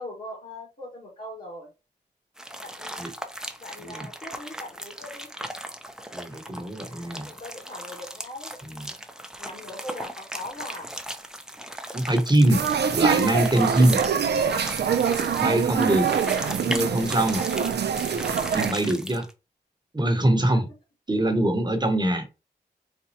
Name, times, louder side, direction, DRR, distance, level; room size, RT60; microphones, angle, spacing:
voice 1, 0.0-1.7 2.6-3.1 3.6-5.3 7.1-9.0 9.4-10.9 20.5-20.6, left 1 dB, 50° left, 1.7 m, -40 dB
sound 1, 2.4-19.3, equal, 5° right, 0.6 m, -38 dB
voice 2, 6.1-7.3 8.6-8.8 11.9-12.7 12.9-14.0 15.4-16.1 16.6-17.4 18.5-19.3 19.9-20.7 21.1-22.3, right 1 dB, 25° right, 1.0 m, -23 dB
sound 2, 12.5-18.7, right 7 dB, 65° right, 0.5 m, -24 dB
4.2 x 2.2 x 2.8 m
cardioid pair, 50°, 18 cm